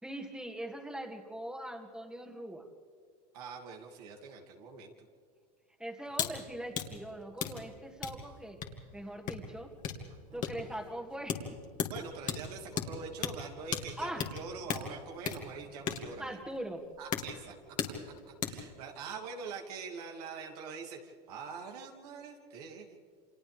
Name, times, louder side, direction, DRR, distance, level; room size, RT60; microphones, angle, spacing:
voice 1, 0.0-2.7 5.8-8.6 8.9-9.7 10.3-11.6 14.0-14.3 16.2-16.9, right 1 dB, 5° right, 2 dB, 2.5 m, -41 dB
voice 2, 3.3-4.9 10.3-10.4 11.9-16.4 17.0-17.6 18.4-23.0, right 5 dB, 70° right, 1 dB, 3.1 m, -44 dB
sound 1, 6.1-6.3 6.6-18.7, left 7 dB, 40° left, 2.5 m, -38 dB
29.5 x 26.0 x 3.5 m, 2.1 s
hypercardioid pair, 100°, 20 cm